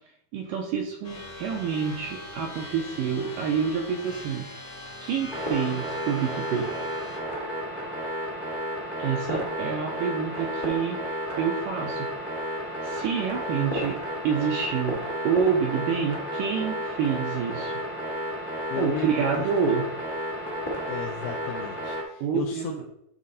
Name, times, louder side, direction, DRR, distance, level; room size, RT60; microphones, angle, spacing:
voice 1, 0.3-4.5 5.0-6.7 9.0-12.1 12.8-14.0 14.2-17.8 18.8-19.8 22.2-22.8, right 7 dB, 80° right, 2 dB, 2.0 m, -28 dB
sound 1, 1.0-7.2, left 2 dB, 55° left, 1.0 m, -41 dB
sound 2, 5.3-22.0, equal, 35° left, 0.4 m, -32 dB
voice 2, 13.6-13.9 18.7-19.5 20.9-22.7, left 8 dB, 85° left, 4 dB, 2.1 m, -35 dB
11.5 x 4.0 x 4.1 m, 0.76 s
omnidirectional pair, 4.8 m